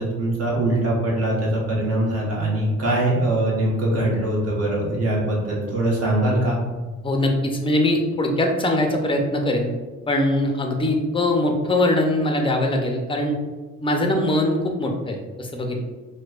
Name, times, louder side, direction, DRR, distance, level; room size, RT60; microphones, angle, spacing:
voice 1, 0.0-6.6, right 1 dB, 55° right, -4 dB, 1.2 m, -22 dB
voice 2, 7.0-9.7 10.1-13.3 13.8-15.8, left 1 dB, 15° left, 3 dB, 0.5 m, -22 dB
4.5 x 2.2 x 2.4 m, 1.3 s
cardioid pair, 90°, 30 cm